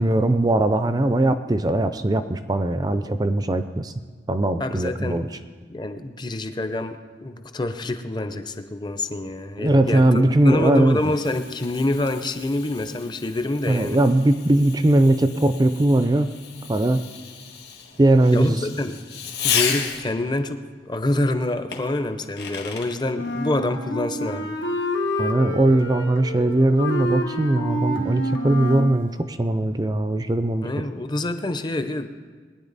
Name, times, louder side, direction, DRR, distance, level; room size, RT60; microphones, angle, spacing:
voice 1, 0.0-3.9 4.3-5.3 9.6-11.1 13.7-16.3 16.7-17.0 18.0-18.7 25.2-30.7, right 1 dB, 20° right, 10 dB, 0.5 m, -20 dB
voice 2, 4.6-5.2 5.7-14.0 18.3-19.0 19.4-24.6 30.6-32.1, left 2 dB, 25° left, 9 dB, 0.6 m, -26 dB
Fireworks, 10.4-20.3 21.7-23.0, left 7 dB, 60° left, 1.9 m, -33 dB
Wind instrument woodwind instrument, 23.1-29.0, left 1 dB, 90° left, 1.5 m, -28 dB
21.5 x 9.8 x 4.0 m, 1.5 s
head